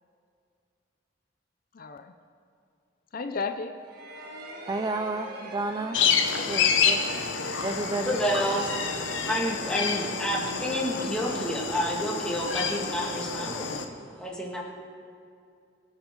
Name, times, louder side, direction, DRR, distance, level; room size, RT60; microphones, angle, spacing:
voice 1, 1.7-2.1 3.1-3.8 5.9-6.6, left 4 dB, 50° left, 7 dB, 0.5 m, -35 dB
sound 1, 3.8-12.5, right 2 dB, 60° right, 1.6 m, -44 dB
voice 2, 4.7-6.0 6.5-7.0 7.6-8.2, right 2 dB, 20° right, 6 dB, 0.4 m, -31 dB
sound 2, 5.9-13.9, left 6 dB, 85° left, 1.0 m, -28 dB
voice 3, 8.1-8.7 9.3-13.8 14.2-14.6, equal, 5° left, -3 dB, 1.9 m, -29 dB
23.5 x 8.1 x 3.8 m, 2.4 s
head